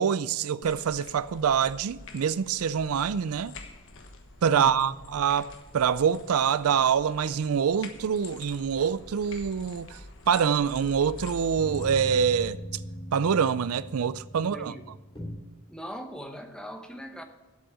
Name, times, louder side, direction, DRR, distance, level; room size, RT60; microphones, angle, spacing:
voice 1, 0.0-3.5 4.4-10.0 10.3-12.6 13.1-14.7, right 7 dB, 80° right, 0.4 m, -25 dB
sound 1, 0.6-12.5, left 2 dB, 60° left, 1.3 m, -47 dB
voice 2, 4.5-5.0 14.3-14.8 15.7-17.2, equal, 5° left, 0.9 m, -40 dB
Tones Retro Soothing Radiohead Bell, 11.6-15.3, equal, 25° left, 3.2 m, -40 dB
8.2 x 7.8 x 8.8 m
head